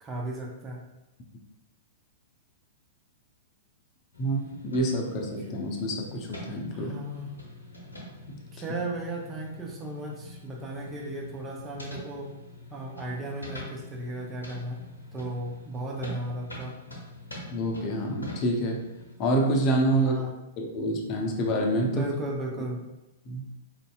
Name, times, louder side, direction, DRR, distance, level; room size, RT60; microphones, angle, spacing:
voice 1, 0.0-0.8 6.7-7.3 8.5-12.3 12.7-14.8 15.1-16.8 19.9-20.3 21.8-22.8, right 1 dB, 20° right, 0 dB, 0.6 m, -35 dB
sound 1, 4.1-19.1, left 1 dB, 85° left, 0.8 m, -45 dB
voice 2, 4.2-6.9 17.5-18.8 19.2-20.3 20.6-22.1 23.3-23.5, right 1 dB, 35° left, 1 dB, 0.6 m, -27 dB
4.3 x 2.6 x 2.3 m, 0.96 s
figure-of-eight pair, 105°, 0 cm